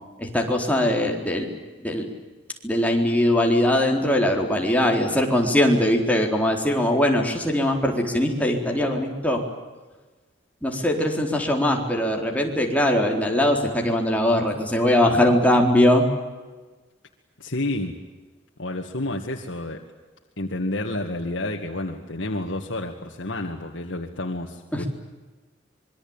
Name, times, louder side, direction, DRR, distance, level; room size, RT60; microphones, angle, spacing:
voice 1, 0.2-1.5 1.8-2.1 2.6-9.4 10.6-16.0 24.7-24.9, left 1 dB, 10° left, 1 dB, 4.2 m, -21 dB
voice 2, 17.4-18.0 18.6-19.8 20.4-24.8, left 1 dB, 80° left, 2 dB, 2.1 m, -30 dB
26.0 x 23.5 x 9.0 m, 1.3 s
head